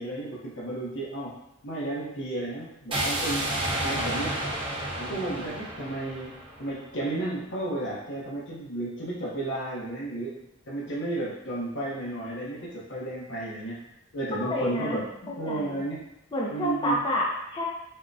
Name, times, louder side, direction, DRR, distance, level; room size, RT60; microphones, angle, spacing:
voice 1, 0.0-3.5 3.8-4.4 5.0-10.4 10.7-13.8 14.1-16.0 16.5-17.0, right 2 dB, 65° left, -5 dB, 0.7 m, -33 dB
sound 1, 2.9-7.0, right 1 dB, 25° right, 0.6 m, -31 dB
voice 2, 14.3-15.0 15.3-15.8 16.3-17.6, left 1 dB, 25° left, -3 dB, 0.4 m, -29 dB
3.5 x 2.1 x 2.5 m, 0.85 s
head